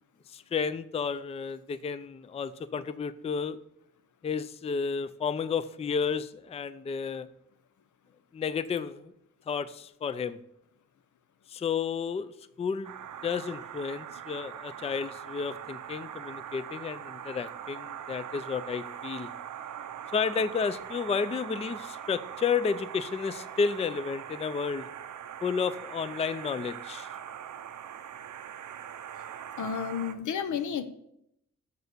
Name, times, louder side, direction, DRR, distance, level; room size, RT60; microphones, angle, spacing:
voice 1, 0.3-3.6 4.2-7.3 8.3-9.1 9.5-10.4 11.5-13.0 13.2-19.3 20.1-24.9 25.4-27.1, left 5 dB, 20° left, 15 dB, 0.3 m, -32 dB
sound 1, 12.8-30.2, right 9 dB, 85° right, 0.6 m, -42 dB
voice 2, 29.6-30.8, left 7 dB, 90° left, 11 dB, 0.8 m, -31 dB
6.7 x 6.7 x 6.7 m, 0.78 s
wide cardioid pair, 125°, 29 cm